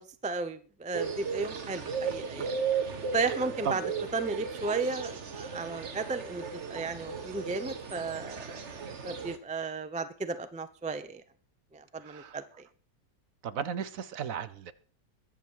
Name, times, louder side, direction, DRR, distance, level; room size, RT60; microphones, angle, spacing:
voice 1, 0.0-2.5 3.1-3.8 4.1-8.4 8.7-8.8 9.0-11.2 11.7-12.4, right 3 dB, 10° right, 10 dB, 0.3 m, -34 dB
Morning birds in Fife Scotland, 0.9-9.4, right 6 dB, 45° right, 1.5 m, -35 dB
voice 2, 12.0-12.4 13.4-14.7, right 7 dB, 60° right, 13 dB, 1.1 m, -35 dB
21.0 x 7.2 x 4.7 m, 0.41 s
omnidirectional pair, 1.7 m